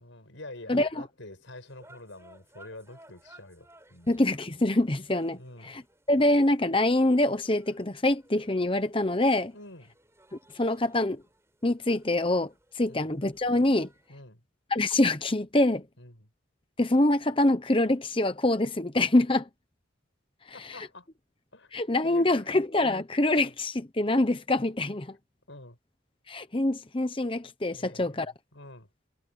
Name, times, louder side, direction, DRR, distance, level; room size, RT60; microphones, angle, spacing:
voice 1, 0.0-4.1 5.4-5.8 9.5-9.9 12.9-13.1 14.1-14.4 16.0-16.3 20.5-21.1 21.5-21.7 22.0-22.7 23.4-23.5 25.5-25.8 27.7-28.9, left 2 dB, 75° left, 6.0 m, -47 dB
sound 1, 1.5-14.1, right 1 dB, 15° right, 7.9 m, -60 dB
voice 2, 4.1-5.4 5.7-5.8 6.1-9.5 10.5-11.2 11.6-13.9 14.7-15.8 16.8-19.5 21.7-25.1 26.3-28.3, left 1 dB, 25° left, 0.9 m, -25 dB
head